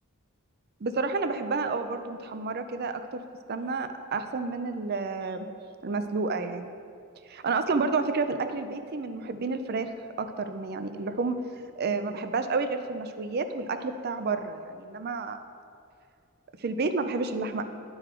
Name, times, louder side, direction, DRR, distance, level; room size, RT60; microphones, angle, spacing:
voice 1, 0.8-3.2 3.5-5.5 5.8-6.7 7.3-9.9 10.2-11.4 11.8-15.4 16.6-17.6, right 4 dB, 50° right, 9 dB, 0.5 m, -30 dB
11.5 x 4.0 x 4.4 m, 2.4 s
head